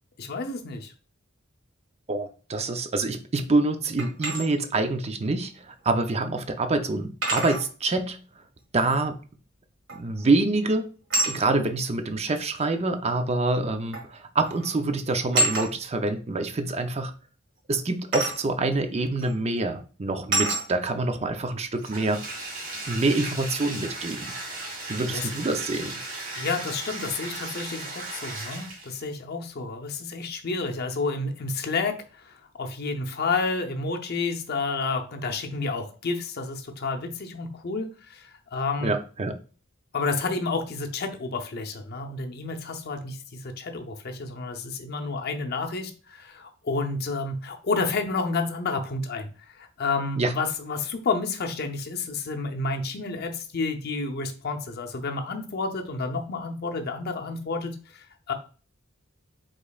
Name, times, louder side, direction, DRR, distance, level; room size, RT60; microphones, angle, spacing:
voice 1, 0.2-0.9 25.1-25.3 26.4-38.9 39.9-58.3, left 3 dB, 50° left, 0.6 m, -30 dB
voice 2, 2.1-8.2 8.7-9.2 10.0-10.9 11.2-17.1 17.7-22.3 22.9-24.3 24.9-26.0 38.8-39.4 50.2-50.3, right 2 dB, 30° right, 0.5 m, -26 dB
sound 1, 4.0-4.4 6.0-6.1 7.2-7.7 9.9-10.2 11.1-11.4 12.6-12.7 13.9-14.1 14.4-14.7 15.3-15.7 18.1-18.4 19.2-19.3 20.3-20.7, right 2 dB, 70° right, 1.9 m, -26 dB
Bathtub (filling or washing), 21.8-29.0, right 2 dB, 50° right, 2.0 m, -36 dB
5.1 x 3.7 x 2.3 m
head